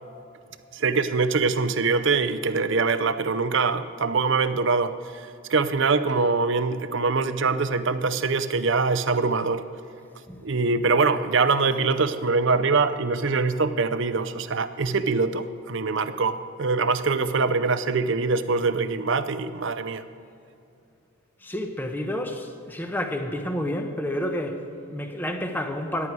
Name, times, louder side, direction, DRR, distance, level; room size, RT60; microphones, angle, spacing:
voice 1, 0.7-9.6 10.4-20.0, right 4 dB, 55° right, 12 dB, 0.6 m, -23 dB
voice 2, 21.4-26.1, left 1 dB, 10° left, 5 dB, 0.9 m, -30 dB
14.0 x 11.0 x 4.7 m, 2.6 s
head